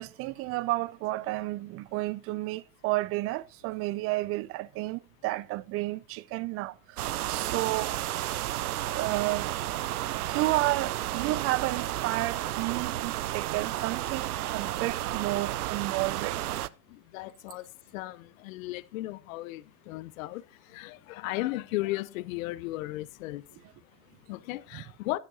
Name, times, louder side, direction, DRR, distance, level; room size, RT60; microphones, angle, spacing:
voice 1, 0.0-8.0 8.9-9.5 10.3-16.4 24.7-24.8, right 19 dB, 35° right, 0.4 m, -31 dB
sound 1, 7.0-16.7, right 14 dB, 85° right, 0.5 m, -32 dB
voice 2, 16.9-25.2, left 18 dB, 65° left, 0.7 m, -36 dB
12.5 x 9.7 x 2.7 m
hypercardioid pair, 90°, 43 cm